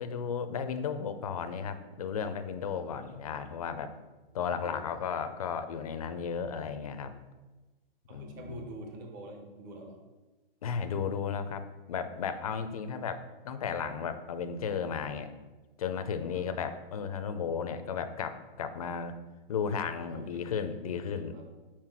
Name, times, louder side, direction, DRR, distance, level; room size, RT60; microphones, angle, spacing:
voice 1, 0.0-3.9 4.3-7.1 8.1-8.6 10.6-13.2 13.4-15.3 15.8-19.2 19.5-21.3, left 6 dB, 40° left, 9 dB, 0.4 m, -34 dB
voice 2, 4.6-5.0 8.1-10.0 12.8-13.0 16.3-16.5 20.0-20.3 20.6-20.7 21.3-21.4, right 1 dB, 20° right, 2 dB, 0.6 m, -46 dB
5.9 x 4.4 x 4.6 m, 1.2 s
hypercardioid pair, 165°, 29 cm